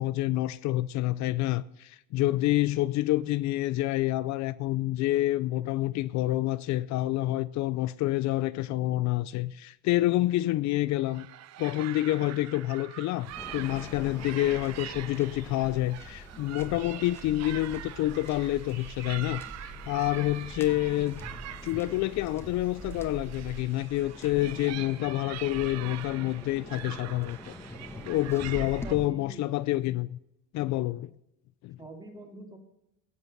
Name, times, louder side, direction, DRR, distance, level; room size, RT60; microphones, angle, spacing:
voice 1, 0.0-11.3 11.6-21.2 21.6-27.6 28.1-30.2 30.5-31.1 31.6-31.8, left 16 dB, 60° left, 0.5 m, -28 dB
sound 1, 10.9-28.9, right 12 dB, 55° right, 0.8 m, -44 dB
sound 2, 13.2-23.6, right 3 dB, 70° right, 5.7 m, -48 dB
Waves surf, 13.4-29.1, left 1 dB, 10° left, 1.5 m, -45 dB
voice 2, 28.8-29.4 31.8-32.6, right 1 dB, 10° right, 2.5 m, -45 dB
16.0 x 7.4 x 6.7 m
cardioid pair, 125°, 32 cm